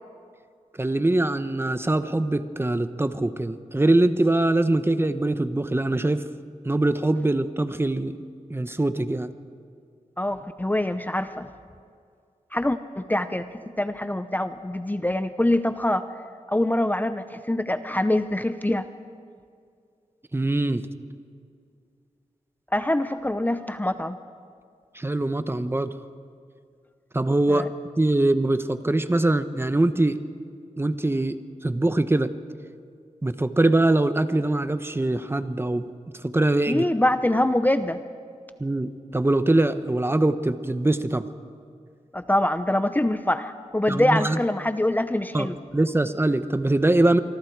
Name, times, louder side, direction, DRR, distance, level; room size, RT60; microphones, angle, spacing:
voice 1, 0.7-6.2 6.6-8.2 8.5-9.3 20.3-20.9 24.9-25.9 27.1-27.6 28.0-30.2 30.8-32.3 33.2-35.9 36.2-36.9 38.6-41.3 43.9-44.4 45.3-47.2, right 2 dB, 20° right, 11 dB, 0.9 m, -23 dB
voice 2, 10.2-11.5 12.5-13.4 13.8-16.0 16.5-18.9 22.7-24.2 27.5-27.6 36.7-38.0 42.1-45.6, left 1 dB, 15° left, 10 dB, 0.7 m, -24 dB
25.5 x 24.0 x 4.7 m, 2.3 s
wide cardioid pair, 80°, 13 cm